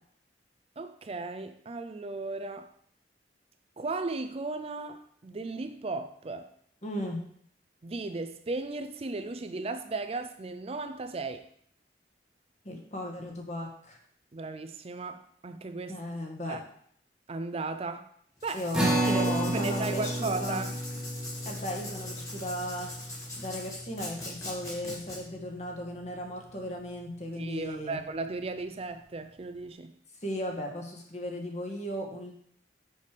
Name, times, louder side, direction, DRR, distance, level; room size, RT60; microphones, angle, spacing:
voice 1, 0.8-2.7 3.8-6.5 7.8-11.5 14.3-16.0 16.5-16.6 17.3-18.1 18.4-18.7 19.0-20.7 27.3-29.9, right 3 dB, 35° right, 0.5 m, -36 dB
voice 2, 6.8-7.2 12.6-14.0 15.9-16.6 18.5-20.6 21.5-22.9 23.3-28.0 30.2-32.3, equal, 40° left, 1.7 m, -36 dB
Writing, 18.4-25.2, left 1 dB, 20° left, 2.3 m, -42 dB
sound 1, 18.7-25.4, right 1 dB, 5° right, 1.6 m, -33 dB
6.7 x 6.6 x 5.2 m
head